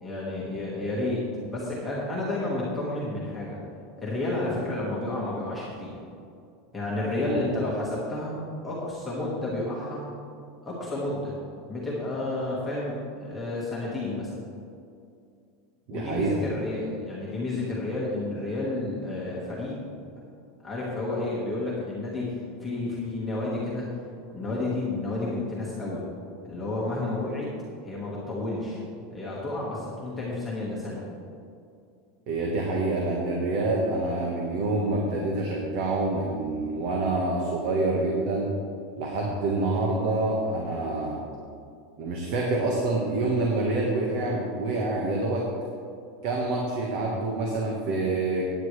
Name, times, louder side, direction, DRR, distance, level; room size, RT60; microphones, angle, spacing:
voice 1, 0.0-3.6 4.0-5.9 6.7-8.4 8.6-10.1 10.7-11.4 11.7-14.3 15.9-19.7 20.6-23.9 24.3-26.0 26.4-27.5 27.8-31.0, left 2 dB, 5° left, -7 dB, 1.6 m, -31 dB
voice 2, 15.9-16.4 32.3-38.5 39.0-41.2 42.0-45.5 46.2-48.5, right 2 dB, 50° right, -1 dB, 1.4 m, -27 dB
16.0 x 9.4 x 3.3 m, 2.4 s
supercardioid pair, 180°, 0 cm